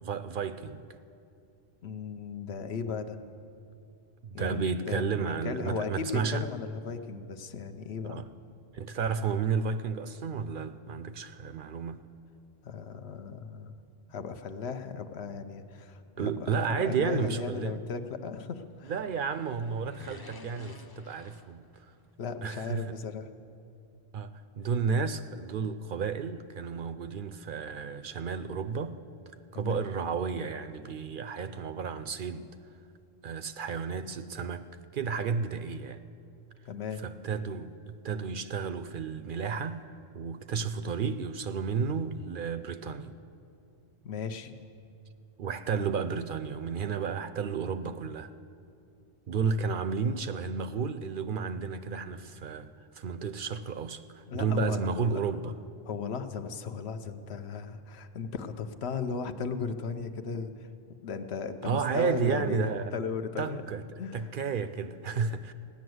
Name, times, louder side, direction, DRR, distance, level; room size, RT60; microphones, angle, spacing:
voice 1, 0.0-0.8 4.2-6.4 8.0-8.3 8.7-12.0 16.2-17.8 18.9-21.9 22.4-22.9 24.1-29.0 29.5-32.5 33.2-34.7 34.9-36.0 37.0-43.1 45.4-48.3 49.3-55.5 61.6-63.0 63.4-63.8 64.1-65.5, right 5 dB, 60° right, 0.6 m, -32 dB
voice 2, 1.8-3.2 4.3-8.2 12.6-13.8 14.1-18.9 22.2-23.3 29.5-29.8 36.7-37.0 44.0-44.6 54.3-55.2 55.8-60.7 61.0-63.6 64.0-64.3, left 5 dB, 75° left, 1.1 m, -36 dB
sound 1, 18.7-22.1 22.3-22.4, left 2 dB, 25° left, 0.6 m, -51 dB
16.0 x 10.5 x 7.8 m
omnidirectional pair, 1.1 m